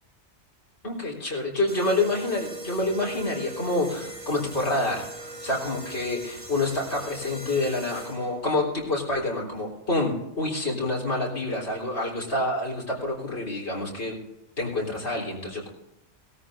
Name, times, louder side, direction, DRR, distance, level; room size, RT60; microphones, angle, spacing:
voice 1, 0.8-14.2 14.6-15.7, left 2 dB, 70° left, -3 dB, 4.1 m, -27 dB
sound 1, 1.7-8.5, right 2 dB, 35° right, 4.0 m, -40 dB
18.5 x 13.5 x 2.5 m, 0.93 s
omnidirectional pair, 1.2 m